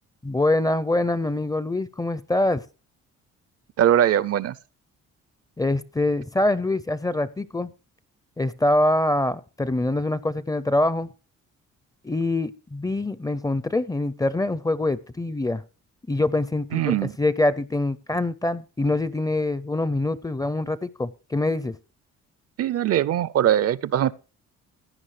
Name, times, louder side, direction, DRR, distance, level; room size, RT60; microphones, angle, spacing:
voice 1, 0.2-2.6 5.6-7.7 8.4-11.1 12.0-15.6 16.1-21.8, left 2 dB, 10° left, 0.4 m, -24 dB
voice 2, 3.8-4.6 16.7-17.1 22.6-24.1, right 11 dB, 55° right, 0.5 m, -21 dB
16.0 x 9.6 x 3.2 m
cardioid pair, 90°, 30 cm